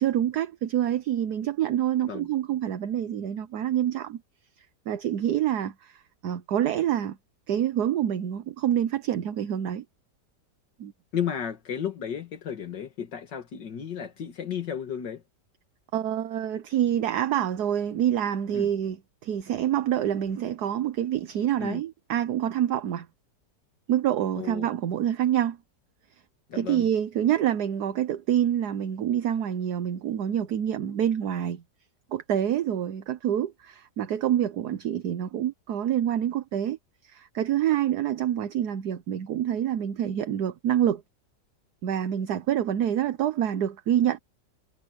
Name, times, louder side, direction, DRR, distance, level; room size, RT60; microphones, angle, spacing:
voice 1, 0.0-4.2 4.6-7.2 7.5-9.8 10.8-10.9 15.9-19.0 19.2-23.1 23.9-25.6 26.5-31.6 32.1-41.0 41.8-44.2, right 10 dB, 65° right, 1.4 m, -27 dB
voice 2, 11.1-15.2 18.5-18.7 21.6-21.8 24.4-24.7 26.5-26.9, left 8 dB, 80° left, 2.2 m, -33 dB
omnidirectional pair, 1.9 m